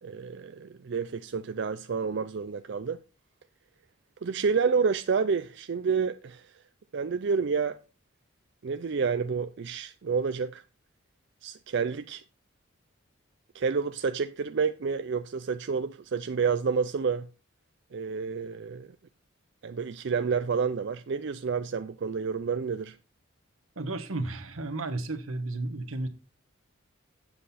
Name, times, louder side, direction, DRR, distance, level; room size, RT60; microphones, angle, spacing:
voice 1, 0.0-3.0 4.2-6.5 6.9-7.8 8.6-10.6 11.4-12.2 13.5-17.3 17.9-19.0 19.6-23.0, right 5 dB, 55° right, 0.4 m, -29 dB
voice 2, 23.7-26.1, right 2 dB, 90° right, 1.2 m, -33 dB
7.6 x 7.6 x 4.1 m
head